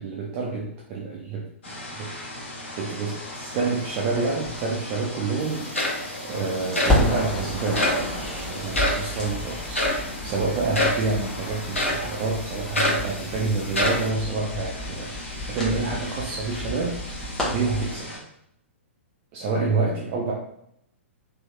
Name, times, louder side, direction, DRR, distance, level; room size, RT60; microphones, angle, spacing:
voice 1, 0.0-1.5 1.9-2.1 2.8-9.9 10.2-17.0 17.4-18.1 19.3-20.3, right 4 dB, 30° right, -3 dB, 0.5 m, -28 dB
sound 1, 1.6-18.2, left 1 dB, 60° left, 1.0 m, -38 dB
Crackle, 4.1-6.3 6.6-17.9, left 1 dB, 10° left, 1.0 m, -31 dB
sound 2, 5.4-5.5 5.7-6.2 6.8-7.0 7.8-8.1 8.7-9.0 9.8-10.1 10.7-11.1 11.8-12.1 12.8-13.1 13.7-14.1, left 1 dB, 80° left, 0.9 m, -24 dB
3.3 x 2.9 x 2.3 m, 0.74 s
figure-of-eight pair, 110°, 7 cm